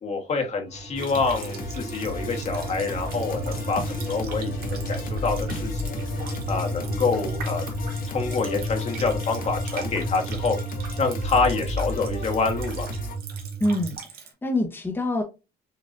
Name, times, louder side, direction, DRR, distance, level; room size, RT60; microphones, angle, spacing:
voice 1, 0.0-6.0 6.5-7.6 8.1-10.6 11.0-12.9, left 4 dB, 40° left, 3 dB, 1.5 m, -27 dB
sound 1, 0.7-13.9, right 1 dB, 35° right, 1.1 m, -32 dB
sound 2, 1.0-13.2, left 3 dB, 55° left, 1.3 m, -35 dB
Water tap faucet, 1.0-14.3, right 6 dB, 65° right, 1.7 m, -43 dB
voice 2, 13.6-15.2, left 1 dB, 10° left, 1 dB, 1.1 m, -26 dB
6.7 x 3.0 x 2.6 m, 0.27 s
cardioid pair, 110°, 17 cm